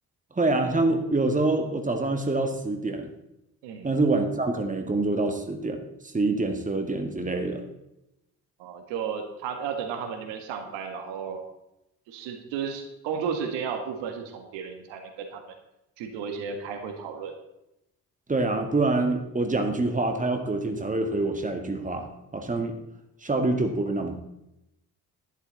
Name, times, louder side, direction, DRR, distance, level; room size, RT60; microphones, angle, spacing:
voice 1, 0.4-3.1 3.8-5.8 6.1-7.6 18.3-22.8 23.2-24.2, right 2 dB, 15° right, 5 dB, 1.8 m, -26 dB
voice 2, 8.6-11.4 12.1-15.4 16.0-17.3, right 6 dB, 65° right, 4 dB, 1.7 m, -33 dB
11.5 x 11.0 x 4.0 m, 0.87 s
figure-of-eight pair, 45°, 46 cm